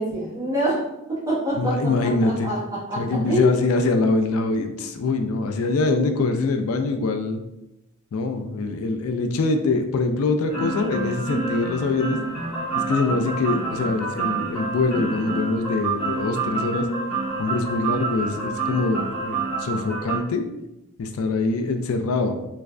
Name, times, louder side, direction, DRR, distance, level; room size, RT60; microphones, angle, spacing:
voice 1, 0.0-3.5, equal, 15° right, -10 dB, 1.4 m, -25 dB
voice 2, 1.6-2.5 3.0-7.4 8.1-12.2 12.7-16.9 17.4-20.4 21.0-22.4, left 3 dB, 75° left, 6 dB, 0.3 m, -24 dB
sound 1, 10.5-20.2, right 3 dB, ahead, 1.2 m, -28 dB
3.3 x 3.1 x 2.4 m, 0.91 s
head